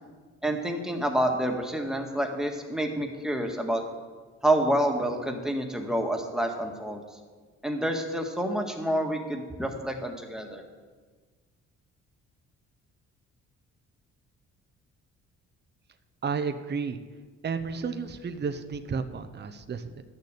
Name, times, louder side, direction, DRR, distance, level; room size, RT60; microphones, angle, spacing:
voice 1, 0.4-3.8 4.4-7.0 7.6-10.6, right 1 dB, ahead, 3 dB, 1.8 m, -28 dB
voice 2, 16.2-17.0 17.4-20.0, right 5 dB, 35° right, 9 dB, 0.8 m, -32 dB
11.5 x 6.8 x 8.2 m, 1.4 s
cardioid pair, 90°, 30 cm